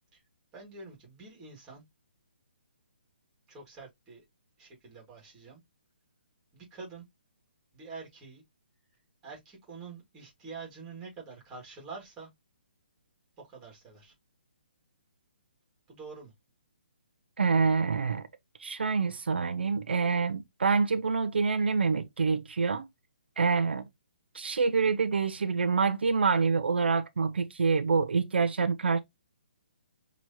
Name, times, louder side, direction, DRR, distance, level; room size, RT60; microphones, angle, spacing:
voice 1, 0.5-1.8 3.5-4.2 4.6-5.6 6.5-7.0 7.7-8.4 9.2-12.3 13.4-14.1 15.9-16.3, right 4 dB, 10° right, 1.8 m, -46 dB
voice 2, 17.4-18.2 18.6-22.9 23.4-23.9 24.3-29.0, right 5 dB, 85° right, 0.7 m, -26 dB
6.1 x 3.1 x 2.7 m
hypercardioid pair, 170°, 6 cm